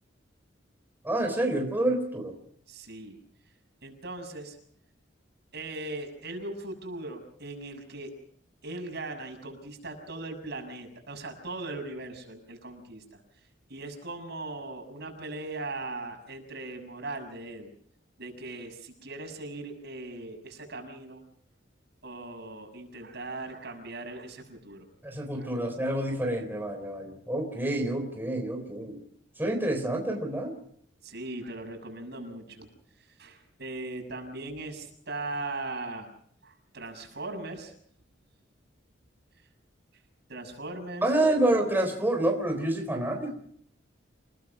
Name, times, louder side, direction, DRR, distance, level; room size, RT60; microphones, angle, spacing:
voice 1, 1.0-2.3 25.0-29.0 29.4-30.5 41.0-43.3, right 1 dB, 10° right, 2 dB, 3.9 m, -28 dB
voice 2, 2.7-3.2 3.8-4.6 5.5-8.1 8.6-13.2 13.7-17.7 18.2-21.2 22.0-24.8 25.4-25.5 31.0-32.7 33.2-36.1 36.4-37.7 40.3-41.4, right 2 dB, 65° right, 4 dB, 6.7 m, -39 dB
29.0 x 19.0 x 6.0 m, 0.64 s
head